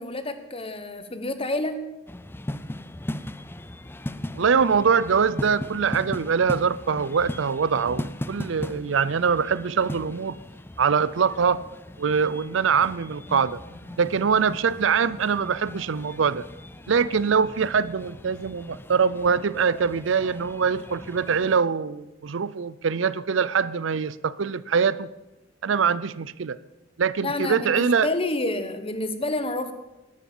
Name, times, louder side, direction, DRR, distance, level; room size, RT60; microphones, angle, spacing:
voice 1, 0.0-1.8 27.2-29.7, left 2 dB, 30° left, 10 dB, 1.3 m, -29 dB
sound 1, 2.1-21.6, left 1 dB, 10° left, 0.5 m, -38 dB
voice 2, 4.4-10.4 10.8-11.6 12.0-13.6 14.0-16.4 16.9-25.1 25.6-26.6 27.0-28.1, right 6 dB, 75° right, 18 dB, 0.5 m, -23 dB
Marimba xylophone, 13.6-16.5, left 1 dB, 65° left, 3.8 m, -52 dB
13.0 x 12.0 x 7.2 m, 1.0 s
head